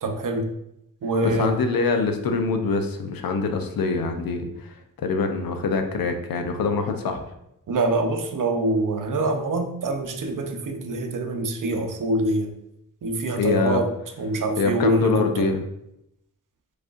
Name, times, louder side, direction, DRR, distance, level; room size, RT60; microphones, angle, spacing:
voice 1, 0.0-0.5 1.0-1.6 7.7-12.5 13.0-13.9 14.2-15.4, right 2 dB, 60° right, 5 dB, 0.8 m, -25 dB
voice 2, 1.2-7.2 13.4-13.8 14.6-15.6, left 4 dB, 75° left, 6 dB, 0.7 m, -24 dB
4.9 x 4.2 x 2.5 m, 0.82 s
cardioid pair, 60°, 35 cm